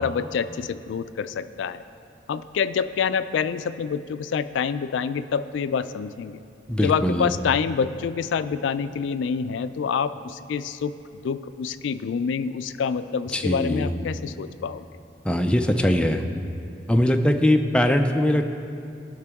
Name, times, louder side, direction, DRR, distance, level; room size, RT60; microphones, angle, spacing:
voice 1, 0.0-1.8 2.3-6.4 6.8-10.9 11.2-14.8, left 6 dB, 70° left, 13 dB, 0.3 m, -27 dB
voice 2, 6.7-7.3 13.3-13.9 15.2-16.2 16.9-18.4, left 1 dB, 5° left, 5 dB, 0.4 m, -21 dB
16.0 x 5.9 x 3.5 m, 2.5 s
head